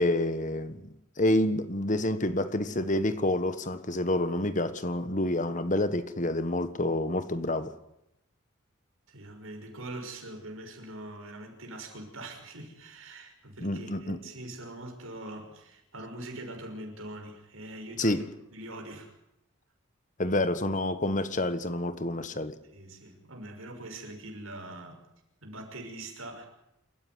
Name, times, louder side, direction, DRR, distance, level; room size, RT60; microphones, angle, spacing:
voice 1, 0.0-7.7 13.6-14.2 18.0-18.3 20.2-22.6, left 1 dB, 40° left, 1.5 m, -28 dB
voice 2, 9.1-18.2 18.5-19.1 22.7-25.0 25.4-26.5, right 1 dB, 85° right, 6.0 m, -43 dB
28.0 x 15.0 x 9.7 m
head